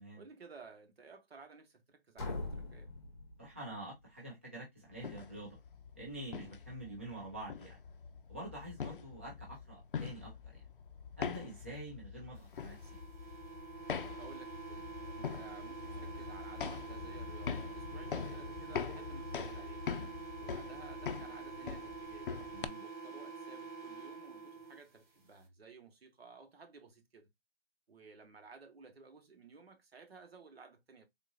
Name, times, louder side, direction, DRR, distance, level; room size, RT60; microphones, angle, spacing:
voice 1, 0.1-2.9 14.2-14.9 15.1-19.8 20.4-22.3 22.8-27.3 27.9-31.0, right 4 dB, 75° right, 1.2 m, -55 dB
sound 1, 2.2-4.0, left 2 dB, 25° left, 0.8 m, -43 dB
voice 2, 3.4-5.6 5.9-7.8 8.3-10.6 11.2-12.9 19.9-20.1 22.5-22.8, right 1 dB, 15° right, 0.5 m, -47 dB
sound 2, 4.9-22.7, left 6 dB, 60° left, 0.5 m, -43 dB
sound 3, 12.7-24.8, right 4 dB, 50° right, 1.1 m, -47 dB
3.7 x 2.5 x 2.3 m
hypercardioid pair, 165°, 31 cm